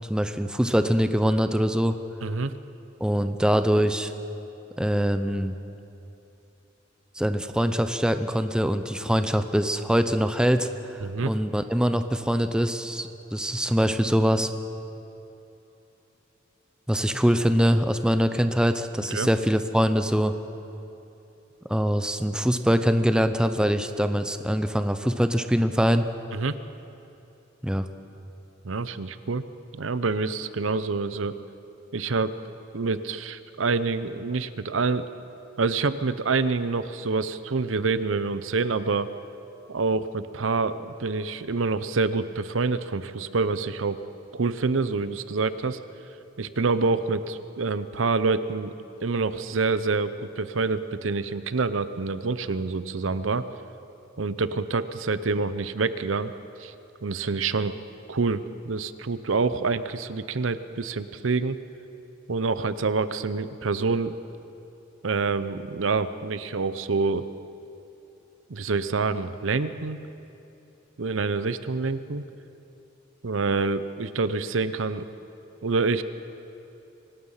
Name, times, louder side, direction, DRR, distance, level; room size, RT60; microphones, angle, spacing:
voice 1, 0.1-2.0 3.0-4.1 4.8-5.5 7.2-14.5 16.9-20.3 21.6-26.1 27.6-27.9, equal, 5° right, 9 dB, 0.7 m, -23 dB
voice 2, 2.2-2.5 11.0-11.3 19.1-19.3 26.3-26.6 28.6-29.4 29.7-31.4 31.9-32.3 32.7-35.1 35.6-39.1 39.7-44.1 44.3-45.8 46.4-48.7 49.0-53.4 54.2-56.3 56.6-56.7 57.0-57.8 58.1-61.6 62.3-64.2 65.0-67.3 68.5-70.0 71.0-72.2 73.2-75.1 75.6-76.0, right 4 dB, 80° right, 13 dB, 0.7 m, -27 dB
24.5 x 19.0 x 5.7 m, 2.9 s
head